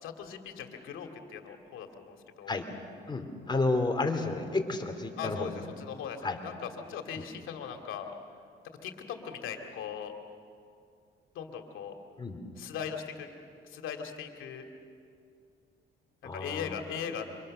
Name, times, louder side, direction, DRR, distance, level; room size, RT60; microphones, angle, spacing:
voice 1, 0.0-2.6 5.2-8.2 8.8-10.1 11.3-11.9 12.6-13.3 13.6-14.7 16.3-17.3, left 7 dB, 85° left, 4 dB, 2.5 m, -39 dB
voice 2, 3.1-5.5 6.2-6.4 12.2-12.4 16.2-16.8, left 3 dB, 20° left, 4 dB, 3.2 m, -31 dB
28.0 x 25.5 x 6.6 m, 2.4 s
cardioid pair, 90°, 20 cm